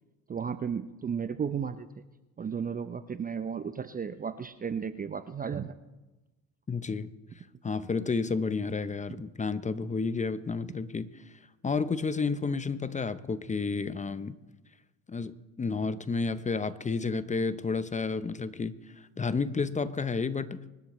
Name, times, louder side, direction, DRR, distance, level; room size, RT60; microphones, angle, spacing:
voice 1, 0.3-2.0 2.4-5.8 9.1-9.2, right 7 dB, 20° right, 12 dB, 0.6 m, -34 dB
voice 2, 6.7-7.1 7.4-11.2 11.6-14.3 15.1-20.6, left 4 dB, 15° left, 14 dB, 0.7 m, -31 dB
25.0 x 12.0 x 3.2 m, 1.1 s
hypercardioid pair, 80°, 43 cm